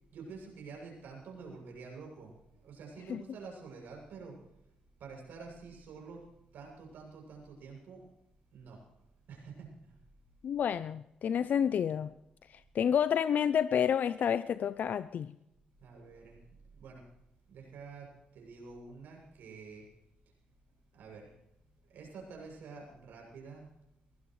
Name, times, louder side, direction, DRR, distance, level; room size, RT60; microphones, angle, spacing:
voice 1, 0.1-4.3 5.0-6.2 6.5-8.0 8.5-8.8 9.3-9.7 15.8-16.4 16.7-17.0 17.5-18.1 18.3-19.8 20.9-21.3 21.9-23.7, right 4 dB, 75° right, 0 dB, 7.3 m, -48 dB
voice 2, 10.4-12.1 12.5-15.3, left 8 dB, 60° left, 14 dB, 0.5 m, -29 dB
21.5 x 16.0 x 3.2 m, 0.83 s
supercardioid pair, 65°, 3 cm